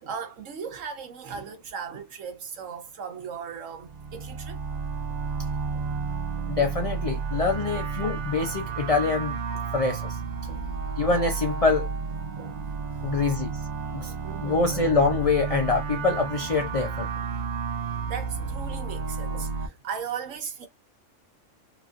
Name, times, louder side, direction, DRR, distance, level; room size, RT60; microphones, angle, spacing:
voice 1, 0.0-4.6 5.4-5.9 6.4-6.5 7.3-7.4 9.5-9.6 10.5-10.6 12.4-12.6 13.0-13.1 14.0-14.6 17.4-17.5 18.1-20.7, right 6 dB, 85° right, 1.2 m, -38 dB
sound 1, 3.8-19.7, right 5 dB, 65° right, 0.4 m, -32 dB
voice 2, 6.5-9.4 9.7-10.2 11.0-11.9 13.0-13.6 13.9-14.1 14.4-17.1, left 4 dB, 70° left, 0.3 m, -25 dB
3.0 x 2.4 x 2.4 m
omnidirectional pair, 1.3 m